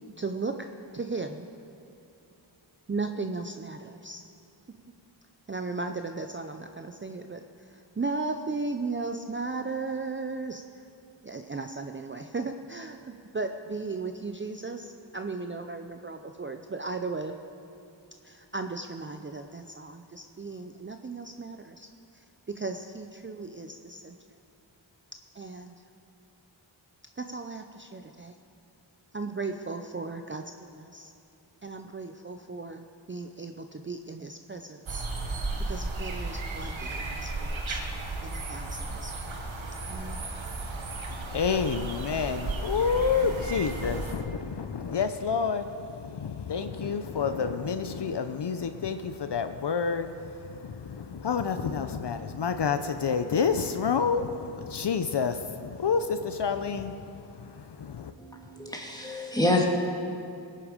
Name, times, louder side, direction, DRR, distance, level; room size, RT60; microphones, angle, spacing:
voice 1, 0.2-0.6 0.9-1.4 2.9-4.2 5.5-7.4 7.7-10.6 11.2-17.3 18.2-21.9 22.5-24.1 25.4-25.7 27.2-28.3 29.1-30.4 30.7-31.1 31.6-35.0 35.7-37.8 38.2-39.4 39.9-40.2, right 3 dB, 25° right, 6 dB, 0.6 m, -36 dB
sound 1, 34.9-44.1, right 2 dB, 80° right, 1.4 m, -34 dB
voice 2, 41.1-58.1, left 6 dB, 60° left, 9 dB, 0.7 m, -29 dB
voice 3, 58.2-59.6, left 1 dB, 10° left, 0 dB, 2.1 m, -27 dB
19.5 x 8.7 x 5.1 m, 2.7 s
wide cardioid pair, 65°, 46 cm